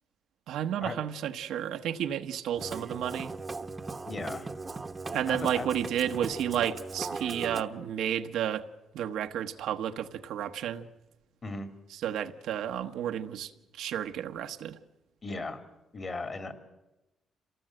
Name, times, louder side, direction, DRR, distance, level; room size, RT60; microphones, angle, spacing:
voice 1, 0.5-3.3 5.1-8.7 8.9-10.9 11.9-14.8, right 10 dB, 80° right, 1.1 m, -32 dB
Musical instrument, 2.6-7.6, right 3 dB, 25° right, 1.1 m, -38 dB
voice 2, 4.1-4.5 5.3-5.7 11.4-11.7 15.2-15.6 15.9-16.6, left 3 dB, 35° left, 3.0 m, -36 dB
27.5 x 18.5 x 7.8 m
cardioid pair, 90°, 0 cm